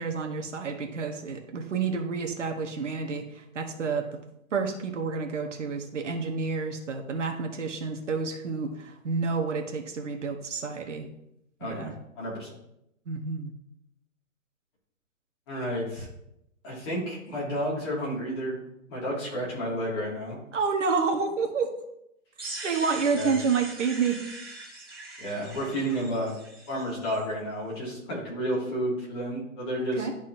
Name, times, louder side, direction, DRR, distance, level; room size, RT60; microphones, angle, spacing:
voice 1, 0.0-4.0 4.5-11.1 11.6-11.9 13.1-13.5 20.5-21.7 22.6-24.2 29.9-30.1, right 5 dB, 60° right, 3 dB, 1.2 m, -29 dB
voice 2, 11.6-11.9 12.2-12.5 15.5-16.1 16.6-18.6 18.9-20.4 23.1-23.3 25.2-26.4 26.7-30.1, equal, 20° left, -6 dB, 2.0 m, -31 dB
sound 1, 22.4-27.2, right 2 dB, 15° right, 0.6 m, -41 dB
11.5 x 4.1 x 2.6 m, 0.81 s
hypercardioid pair, 170°, 41 cm